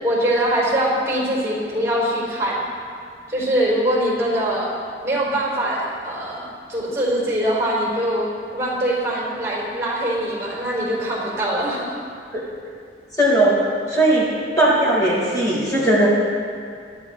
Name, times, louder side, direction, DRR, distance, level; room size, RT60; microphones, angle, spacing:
voice 1, 0.0-2.6 3.3-4.7 5.0-12.0, right 1 dB, 15° right, -4 dB, 4.4 m, -23 dB
voice 2, 13.1-14.3 14.6-16.1, right 1 dB, 20° left, -7 dB, 4.0 m, -18 dB
24.0 x 14.0 x 3.2 m, 2.3 s
head